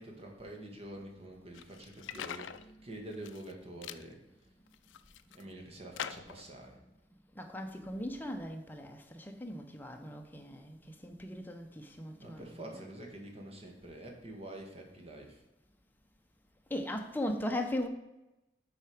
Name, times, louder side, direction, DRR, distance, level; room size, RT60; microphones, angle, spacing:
voice 1, 0.0-4.2 5.3-6.8 12.2-15.4, right 1 dB, 35° right, 1.4 m, -47 dB
sound 1, 1.5-2.6 3.1-3.5 3.8-4.0 4.7-5.4 6.0-6.4, left 9 dB, 75° left, 0.4 m, -43 dB
voice 2, 7.4-12.8 16.7-17.9, left 1 dB, 10° left, 0.7 m, -38 dB
7.3 x 4.8 x 5.0 m
head